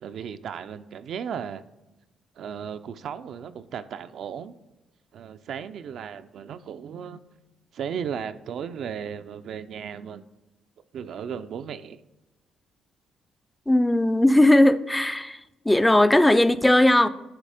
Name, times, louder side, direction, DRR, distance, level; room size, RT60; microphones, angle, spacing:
voice 1, 0.0-1.6 2.4-4.6 5.1-7.2 7.7-10.2 10.9-12.0, right 7 dB, 70° right, 10 dB, 0.4 m, -35 dB
voice 2, 13.7-15.4 15.7-17.1, left 1 dB, 10° left, 13 dB, 0.4 m, -18 dB
9.5 x 3.3 x 4.9 m, 1.0 s
cardioid pair, 90°, 0 cm